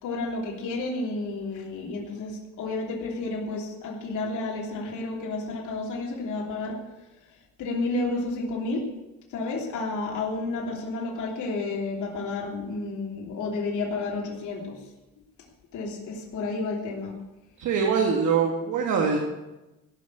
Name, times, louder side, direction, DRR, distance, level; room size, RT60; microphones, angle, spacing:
voice 1, 0.0-6.8 7.6-8.8 9.3-14.8 15.7-17.1, left 3 dB, 80° left, -2 dB, 3.1 m, -31 dB
voice 2, 17.6-19.2, right 6 dB, 80° right, 0 dB, 2.2 m, -23 dB
16.5 x 6.3 x 8.5 m, 1.0 s
cardioid pair, 90°, 30 cm